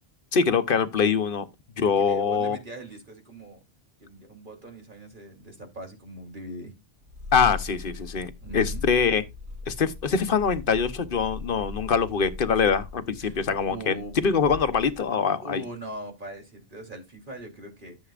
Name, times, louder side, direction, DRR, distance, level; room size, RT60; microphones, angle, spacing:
voice 1, 0.3-1.5 1.8-2.6 7.3-9.2 9.7-15.6, left 6 dB, 60° left, 1.1 m, -24 dB
voice 2, 1.8-3.6 4.0-6.7 8.4-8.9 13.2-13.4 13.7-14.2 15.4-18.0, right 1 dB, 50° right, 3.3 m, -41 dB
Purr, 7.0-15.1, left 3 dB, 85° right, 1.8 m, -39 dB
13.5 x 7.4 x 2.5 m
omnidirectional pair, 1.1 m